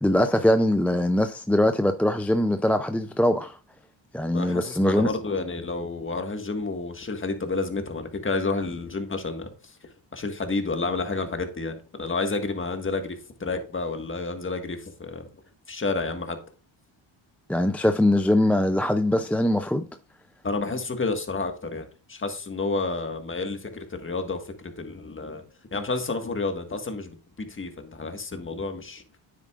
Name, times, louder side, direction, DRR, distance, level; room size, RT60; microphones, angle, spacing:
voice 1, 0.0-3.6 4.1-5.1 17.5-19.9, left 1 dB, 5° left, 0.3 m, -22 dB
voice 2, 4.3-9.5 10.1-15.3 15.7-16.4 20.4-25.4 25.7-29.0, left 3 dB, 25° left, 1.6 m, -30 dB
9.4 x 8.2 x 2.4 m
cardioid pair, 90°, 50 cm